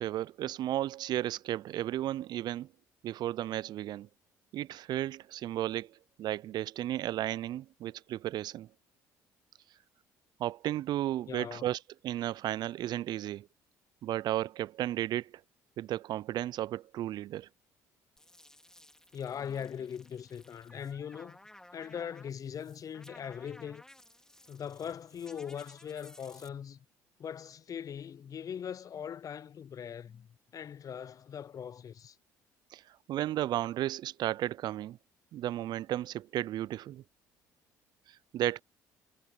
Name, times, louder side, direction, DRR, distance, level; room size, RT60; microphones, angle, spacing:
voice 1, 0.0-2.7 3.0-4.1 4.5-8.7 10.4-13.5 14.0-15.4 15.8-17.5 32.7-35.0 35.3-37.0 38.1-38.6, right 13 dB, 55° right, 0.4 m, -34 dB
voice 2, 11.3-11.6 19.1-21.4 21.7-23.8 24.5-26.8 27.2-32.2, left 8 dB, 45° left, 0.8 m, -41 dB
sound 1, 18.2-26.5, left 1 dB, 5° left, 3.5 m, -57 dB
hypercardioid pair, 60°, 8 cm